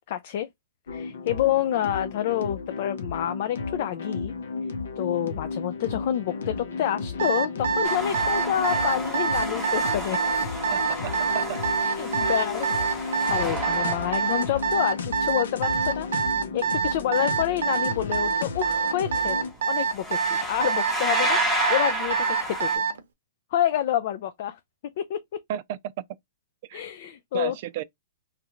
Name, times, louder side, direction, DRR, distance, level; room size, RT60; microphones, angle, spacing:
voice 1, 0.1-0.5 0.9-4.3 5.0-10.2 11.8-16.1 16.5-19.4 19.7-22.8 23.5-24.6 25.0-25.4 26.7-27.6, left 11 dB, 45° left, 0.3 m, -28 dB
sound 1, 0.9-19.5, left 4 dB, 85° left, 0.8 m, -34 dB
Alarm, 7.2-23.0, right 6 dB, 70° right, 0.7 m, -25 dB
sound 2, 7.8-14.9 19.2-19.4 19.7-22.8, right 1 dB, ahead, 0.8 m, -31 dB
voice 2, 10.7-11.6 12.2-12.4 25.5-25.8 26.7-26.8 27.3-27.8, right 12 dB, 40° right, 0.4 m, -33 dB
3.1 x 2.4 x 3.0 m
hypercardioid pair, 160°, 0 cm